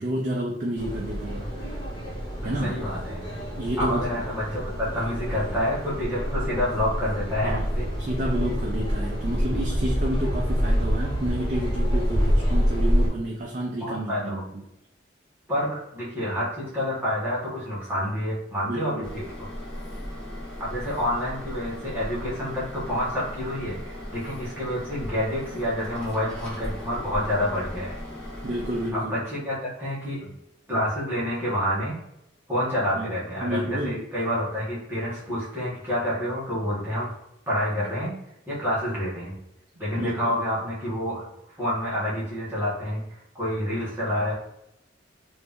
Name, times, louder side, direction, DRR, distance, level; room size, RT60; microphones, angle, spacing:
voice 1, 0.0-1.7 2.4-2.8 3.6-4.2 7.4-7.7 8.0-14.6 18.7-19.2 28.4-29.2 32.9-34.0 40.0-40.3, right 1 dB, 40° right, -1 dB, 0.5 m, -30 dB
sound 1, 0.8-13.1, equal, 20° left, 1.4 m, -27 dB
voice 2, 2.4-3.3 3.8-7.9 13.8-14.5 15.5-19.5 20.6-27.9 28.9-30.3 30.7-31.9 32.5-37.1 37.5-38.1 38.5-39.4 39.8-41.3 41.5-44.3, equal, 10° right, -9 dB, 1.3 m, -28 dB
sound 2, 19.0-28.9, equal, 5° left, 1.2 m, -37 dB
3.2 x 2.6 x 3.5 m, 0.83 s
head